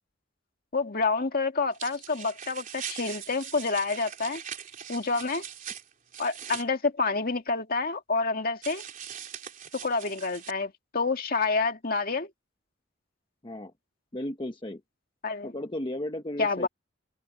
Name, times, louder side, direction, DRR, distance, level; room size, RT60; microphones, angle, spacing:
voice 1, 0.7-4.4 4.9-5.4 6.2-8.8 9.7-12.3 15.2-15.5 16.4-16.7, left 4 dB, 50° left, 2.1 m, -28 dB
sound 1, 1.7-6.6 8.6-10.5, right 9 dB, 45° right, 3.5 m, -41 dB
voice 2, 14.1-14.8 15.4-16.7, left 1 dB, 25° left, 1.0 m, -34 dB
open air
head